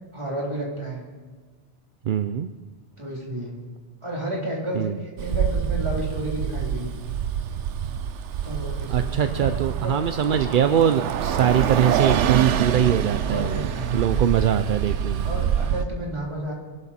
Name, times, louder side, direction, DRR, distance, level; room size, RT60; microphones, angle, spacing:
voice 1, 0.1-1.0 3.0-3.5 4.0-7.1 8.4-10.0 13.3-14.2 15.2-16.5, right 1 dB, 25° right, -4 dB, 3.5 m, -31 dB
voice 2, 2.0-2.5 4.7-5.0 8.9-15.3, right 9 dB, 55° right, 10 dB, 0.6 m, -22 dB
Bus, 5.2-15.8, right 9 dB, 90° right, 1.0 m, -26 dB
23.0 x 12.0 x 4.3 m, 1.4 s
omnidirectional pair, 1.2 m